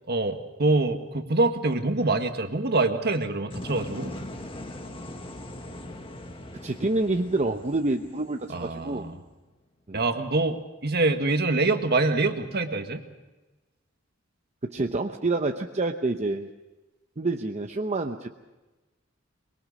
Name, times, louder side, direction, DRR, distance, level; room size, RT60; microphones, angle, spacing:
voice 1, 0.1-4.1 8.5-9.2 9.9-13.0, right 2 dB, 50° right, 6 dB, 1.8 m, -25 dB
sound 1, 3.5-9.4, left 1 dB, 25° left, 1.6 m, -41 dB
voice 2, 6.6-9.1 9.9-10.0 14.6-16.5 17.2-18.3, right 2 dB, 35° right, 4 dB, 0.8 m, -27 dB
23.5 x 22.5 x 6.5 m, 1.1 s
head